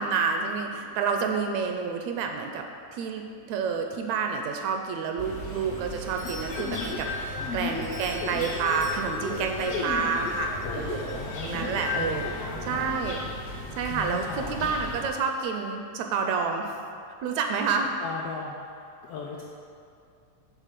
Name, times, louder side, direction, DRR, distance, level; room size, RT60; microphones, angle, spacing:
voice 1, 0.0-2.7 2.9-12.2 12.6-13.2 13.7-16.8 17.2-17.9, right 5 dB, 80° right, 4 dB, 1.7 m, -29 dB
sound 1, 5.2-15.1, equal, 45° left, 1.0 m, -38 dB
Doorbell, 5.9-10.4, left 1 dB, 5° left, 0.3 m, -47 dB
sound 2, 6.2-13.0, left 4 dB, 65° left, 1.6 m, -35 dB
voice 2, 10.6-13.3 13.9-14.7 18.0-19.4, left 5 dB, 85° left, -3 dB, 1.3 m, -38 dB
7.4 x 3.9 x 6.7 m, 2.4 s
omnidirectional pair, 3.3 m